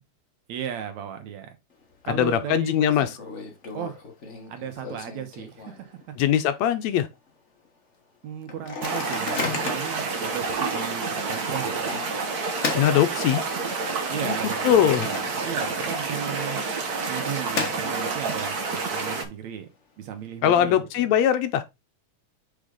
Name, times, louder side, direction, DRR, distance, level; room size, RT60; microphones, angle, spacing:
voice 1, 0.5-1.5 2.1-3.2 3.7-4.0 4.5-6.1 8.2-11.9 14.1-16.7 17.1-19.7 20.0-21.1, right 9 dB, 75° right, 2.4 m, -35 dB
Microwave oven, 1.7-2.2 2.5-2.6 2.9-6.0 6.5-6.6 6.8-7.1 7.6-7.7 8.5-10.0 10.6-10.8 11.9-13.7 14.2-15.7 15.9-16.0 16.9-18.3, left 4 dB, 50° left, 0.8 m, -35 dB
voice 2, 2.1-3.1 6.2-7.1 12.7-13.4 14.2-14.4 14.6-15.1 20.4-21.6, left 10 dB, 75° left, 1.8 m, -21 dB
sound 1, 8.8-19.2, right 4 dB, 60° right, 1.0 m, -29 dB
6.1 x 5.1 x 3.8 m
omnidirectional pair, 3.3 m